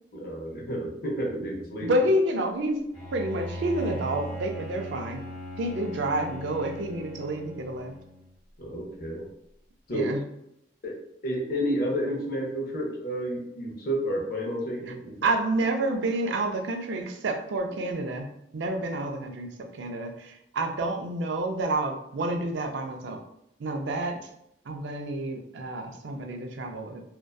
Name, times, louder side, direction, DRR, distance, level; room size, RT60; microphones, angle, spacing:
voice 1, 0.1-1.9 8.6-9.3 9.9-10.1 10.8-15.3, equal, 50° left, -2 dB, 0.6 m, -31 dB
voice 2, 1.8-2.9 3.1-5.2 5.6-7.9 9.9-10.2 15.2-23.2 23.6-24.2 24.7-27.0, right 1 dB, 80° right, 5 dB, 0.4 m, -29 dB
Bowed string instrument, 2.9-8.3, equal, 10° left, 1.1 m, -39 dB
2.5 x 2.2 x 2.2 m, 0.78 s
head